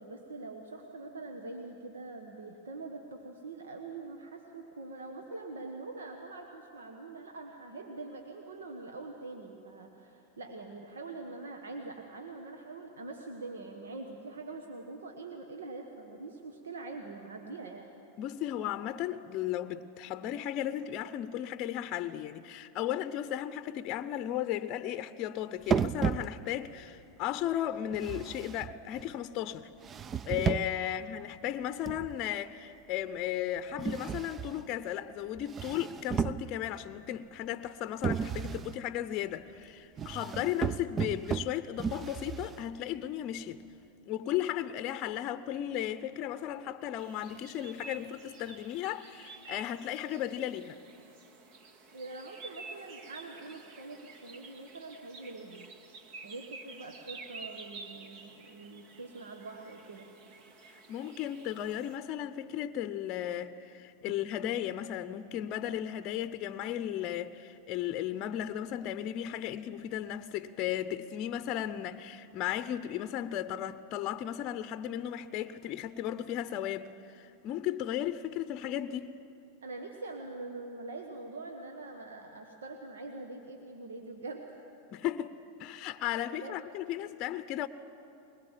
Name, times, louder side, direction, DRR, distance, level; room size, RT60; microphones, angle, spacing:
voice 1, 0.0-17.9 30.8-31.0 51.9-55.7 56.2-60.1 79.6-84.6 86.3-86.6, right 3 dB, 85° right, 1.5 m, -44 dB
voice 2, 18.2-29.7 30.2-43.6 44.1-50.8 60.7-79.1 84.9-87.7, left 11 dB, 45° left, 0.6 m, -35 dB
sound 1, 25.7-26.7 27.9-29.1 29.8-30.9 31.9-32.3 33.8-34.7 35.4-36.8 38.0-38.8 40.0-42.8, right 7 dB, 25° right, 0.4 m, -34 dB
sound 2, 47.0-62.0, right 4 dB, 50° right, 1.9 m, -50 dB
22.0 x 20.5 x 7.5 m
hypercardioid pair, 100°, 0 cm